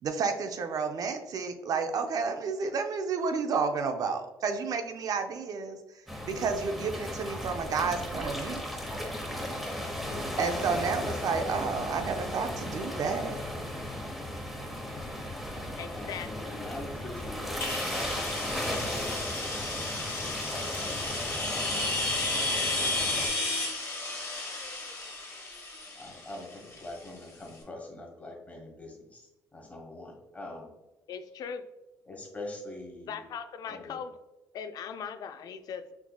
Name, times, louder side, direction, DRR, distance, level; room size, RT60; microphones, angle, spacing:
voice 1, 0.0-5.8 6.3-8.7 10.4-13.4, right 5 dB, 60° right, 7 dB, 0.5 m, -31 dB
sound 1, 6.1-23.3, left 1 dB, ahead, 0.8 m, -36 dB
voice 2, 10.3-10.6 15.8-16.5 31.1-31.6 33.1-34.1 34.5-35.9, left 7 dB, 60° left, 10 dB, 0.3 m, -39 dB
voice 3, 15.9-21.4 22.4-23.6 25.4-25.5 25.9-30.7 32.1-33.3 33.7-34.0, left 2 dB, 20° left, 0 dB, 1.1 m, -45 dB
sound 2, 17.6-27.2, left 2 dB, 40° left, 1.3 m, -33 dB
4.4 x 2.8 x 2.2 m, 1.0 s
cardioid pair, 80°, 7 cm